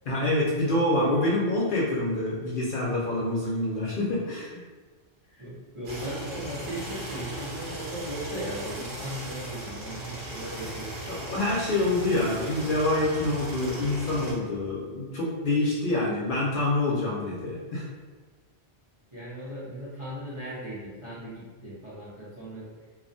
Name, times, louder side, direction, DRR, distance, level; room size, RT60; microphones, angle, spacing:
voice 1, 0.1-4.6 11.1-17.9, left 2 dB, 60° left, -5 dB, 0.6 m, -26 dB
voice 2, 5.4-11.0 19.1-22.7, right 1 dB, 35° right, -10 dB, 0.5 m, -37 dB
sound 1, 5.8-14.3, right 1 dB, 55° right, 0.8 m, -38 dB
2.3 x 2.1 x 2.6 m, 1.4 s
omnidirectional pair, 1.1 m